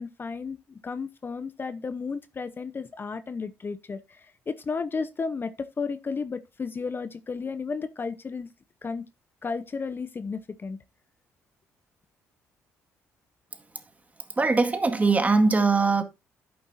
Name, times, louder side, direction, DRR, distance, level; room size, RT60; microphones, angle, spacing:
voice 1, 0.0-8.5 8.8-9.0 9.4-10.8, left 4 dB, 35° left, 0.8 m, -33 dB
voice 2, 14.4-16.0, right 3 dB, 25° right, 2.0 m, -21 dB
10.5 x 8.8 x 2.7 m
supercardioid pair, 65°, 6 cm